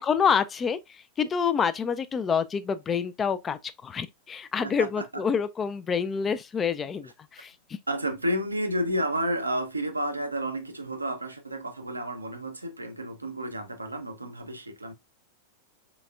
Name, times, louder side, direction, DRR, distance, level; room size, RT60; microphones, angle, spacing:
voice 1, 0.0-7.5, left 6 dB, 20° left, 0.3 m, -27 dB
voice 2, 4.6-5.2 7.9-14.9, right 1 dB, 80° right, 0.6 m, -31 dB
3.9 x 3.3 x 2.3 m
figure-of-eight pair, 90°, 0 cm